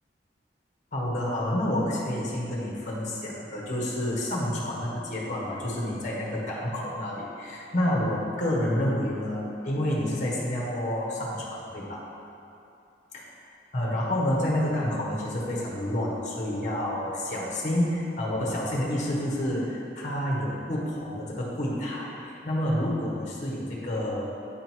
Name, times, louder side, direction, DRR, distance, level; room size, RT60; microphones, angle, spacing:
voice 1, 0.9-12.0 13.7-24.2, left 1 dB, 45° left, -4 dB, 1.3 m, -29 dB
8.9 x 3.9 x 4.6 m, 2.7 s
head